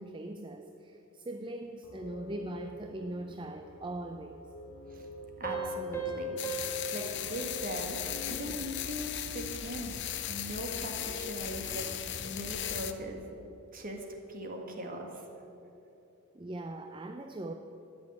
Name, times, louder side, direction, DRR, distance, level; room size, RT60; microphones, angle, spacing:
voice 1, 0.0-4.4 16.3-17.5, right 1 dB, 20° right, 5 dB, 0.5 m, -40 dB
sound 1, 1.8-12.8, left 1 dB, 85° left, 1.0 m, -48 dB
sound 2, 5.4-8.7, right 2 dB, 10° left, 1.3 m, -39 dB
voice 2, 5.4-6.4 6.9-8.0 8.3-9.9 10.3-13.4 13.7-15.1, right 1 dB, 40° right, 2 dB, 1.7 m, -39 dB
sound 3, 6.4-12.9, left 11 dB, 55° left, 0.6 m, -37 dB
13.0 x 6.3 x 9.8 m, 3.0 s
head